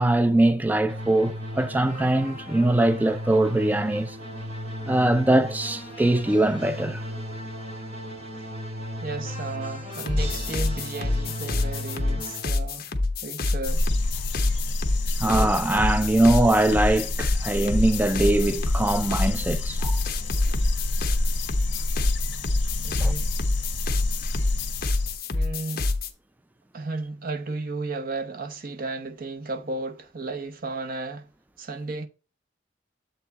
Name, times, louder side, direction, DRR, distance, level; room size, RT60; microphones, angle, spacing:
voice 1, 0.0-4.2 4.9-7.0 15.2-20.0 23.0-23.1, right 1 dB, 10° right, 0.3 m, -22 dB
sound 1, 0.9-12.4, equal, 35° right, 2.5 m, -35 dB
voice 2, 9.0-12.9 13.2-13.9 22.8-23.4 25.3-25.9 26.7-31.3 31.6-32.1, right 3 dB, 50° right, 0.8 m, -34 dB
sound 2, 9.9-26.1, left 2 dB, 50° left, 0.9 m, -27 dB
sound 3, 13.6-25.2, left 1 dB, 75° left, 1.3 m, -29 dB
7.6 x 4.6 x 4.0 m
head